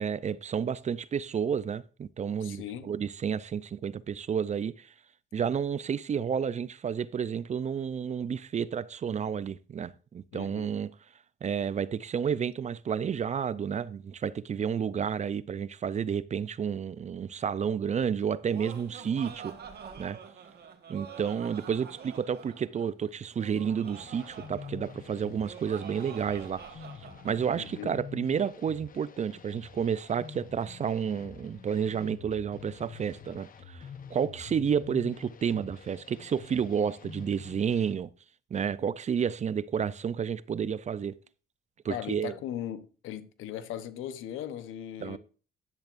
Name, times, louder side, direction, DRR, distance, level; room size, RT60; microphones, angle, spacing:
voice 1, 0.0-4.9 5.3-10.9 11.4-19.5 20.0-20.2 20.9-26.6 27.0-38.1 38.5-41.2 41.8-42.3 45.0-45.2, right 7 dB, 35° right, 0.4 m, -31 dB
voice 2, 2.4-2.9 10.3-10.7 27.6-27.9 41.9-45.2, left 11 dB, 90° left, 0.9 m, -38 dB
Laughter, 18.2-27.4, right 7 dB, 55° right, 1.4 m, -46 dB
sound 1, 23.9-37.9, left 7 dB, 45° left, 0.9 m, -47 dB
10.5 x 10.5 x 2.5 m
cardioid pair, 90°, 20 cm